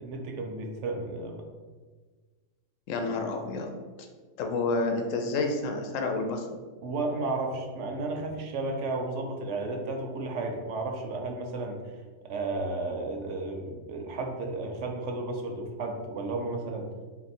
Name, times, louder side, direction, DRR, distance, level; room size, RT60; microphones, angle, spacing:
voice 1, 0.0-1.4 6.8-12.0 12.2-16.9, right 2 dB, 70° right, 2 dB, 0.9 m, -33 dB
voice 2, 2.9-3.7 4.0-4.1 4.4-6.5, left 3 dB, 80° left, 4 dB, 0.9 m, -29 dB
3.7 x 2.6 x 4.1 m, 1.4 s
omnidirectional pair, 1.3 m